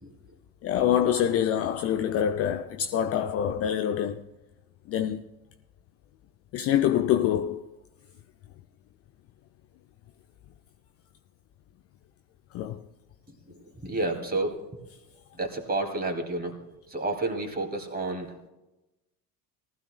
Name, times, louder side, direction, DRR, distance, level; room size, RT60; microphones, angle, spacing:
voice 1, 0.6-4.2 4.9-5.2 6.5-7.7 12.5-12.8, left 10 dB, 30° left, 0.5 m, -25 dB
voice 2, 13.5-14.6 15.4-18.3, right 2 dB, 20° right, 2.4 m, -31 dB
18.5 x 14.0 x 2.2 m
figure-of-eight pair, 70°, 50 cm